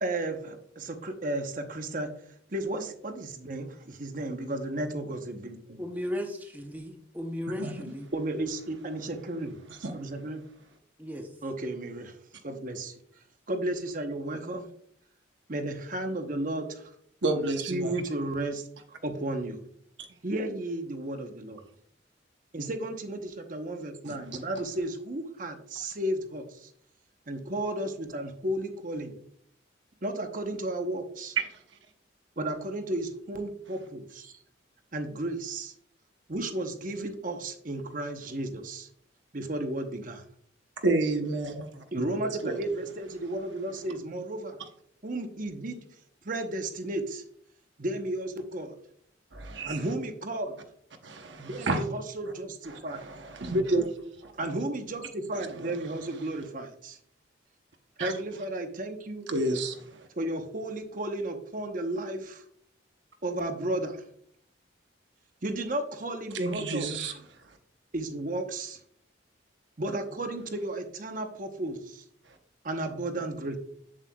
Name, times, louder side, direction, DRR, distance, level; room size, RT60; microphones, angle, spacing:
voice 1, 0.0-2.1 2.5-5.8 8.1-9.6 9.9-10.4 11.4-12.1 12.4-12.9 13.5-14.7 15.5-16.9 17.3-18.6 19.0-19.6 20.2-21.6 22.5-26.7 27.3-29.1 30.0-31.4 32.4-34.3 34.9-35.7 36.3-38.9 39.3-40.2 41.9-44.6 45.0-45.8 46.2-47.2 47.8-48.7 49.6-50.5 51.4-53.0 54.4-57.0 58.0-59.3 60.2-62.4 63.2-64.0 65.4-67.2 67.9-68.8 69.8-72.0 72.6-73.6, right 1 dB, 45° right, 0.9 m, -33 dB
voice 2, 5.8-8.1 11.0-11.3, left 1 dB, 10° right, 0.7 m, -35 dB
voice 3, 17.2-17.9 24.0-24.4 31.4-31.6 40.8-41.8 42.4-42.6 49.3-49.9 51.0-51.8 52.7-53.9 54.2-54.3 55.6-55.7 58.0-58.1 59.3-60.1 66.3-67.1, right 2 dB, 70° right, 0.9 m, -30 dB
7.9 x 7.4 x 2.3 m
head